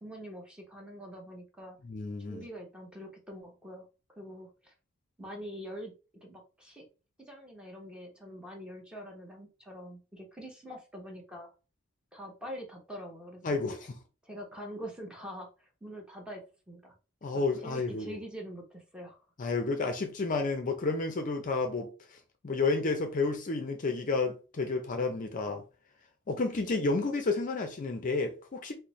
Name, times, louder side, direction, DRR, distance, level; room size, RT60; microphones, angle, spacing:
voice 1, 0.0-1.8 2.3-3.9 4.2-4.7 5.2-5.9 6.2-6.8 7.2-11.5 12.1-13.6 14.2-16.9 17.3-19.2, equal, 5° right, 0.8 m, -44 dB
voice 2, 1.8-2.4 13.4-14.0 17.2-18.1 19.4-22.2 22.4-25.6 26.3-28.7, left 3 dB, 40° left, 0.5 m, -31 dB
4.1 x 2.0 x 3.0 m
head